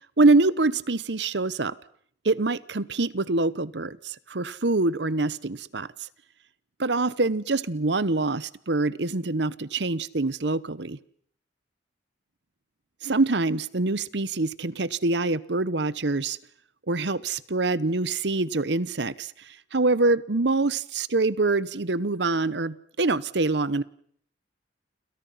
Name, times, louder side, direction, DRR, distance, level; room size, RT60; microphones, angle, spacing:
voice 1, 0.2-1.8 2.2-6.1 6.8-11.0 13.0-16.4 16.9-23.8, right 3 dB, 70° right, 19 dB, 1.0 m, -25 dB
29.5 x 28.0 x 5.8 m, 0.62 s
head